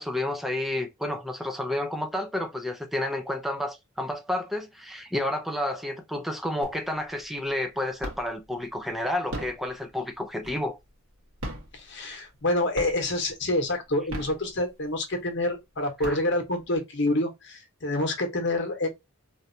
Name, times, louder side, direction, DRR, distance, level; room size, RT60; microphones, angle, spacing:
voice 1, 0.0-10.8 16.0-16.2, left 1 dB, ahead, 0.5 m, -30 dB
sound 1, 6.6-7.1 7.5-8.5 9.1-10.9 11.3-12.4 12.7-13.3 13.9-15.0 15.5-15.6 15.8-16.7, right 1 dB, 80° right, 1.5 m, -38 dB
voice 2, 11.7-18.9, left 1 dB, 55° left, 1.1 m, -27 dB
3.3 x 2.7 x 2.7 m
head